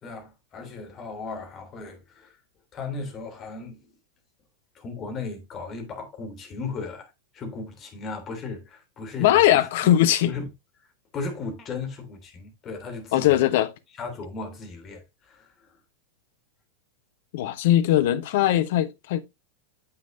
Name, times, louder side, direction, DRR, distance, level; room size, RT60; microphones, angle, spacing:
voice 1, 0.0-2.4 2.7-3.9 4.7-9.7 10.3-10.5 10.8-10.9 11.1-13.3 14.0-15.8, left 4 dB, 30° left, 3.2 m, -36 dB
voice 2, 9.2-10.3 13.1-13.7 17.3-19.2, left 13 dB, 50° left, 1.0 m, -20 dB
9.6 x 7.5 x 2.7 m
figure-of-eight pair, 90°, 0 cm